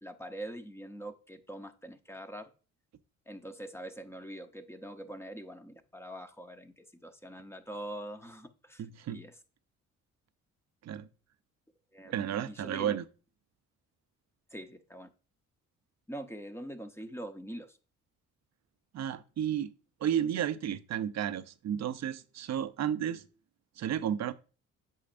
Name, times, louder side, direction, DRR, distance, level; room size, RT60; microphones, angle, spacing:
voice 1, 0.0-2.5 3.3-9.3 11.9-13.0 14.5-15.1 16.1-17.8, right 1 dB, 10° left, 0.8 m, -44 dB
voice 2, 8.8-9.2 10.8-11.1 12.1-13.1 18.9-19.7 20.0-23.2 23.8-24.3, right 10 dB, 60° right, 0.6 m, -32 dB
8.4 x 6.4 x 2.5 m
cardioid pair, 110°, 31 cm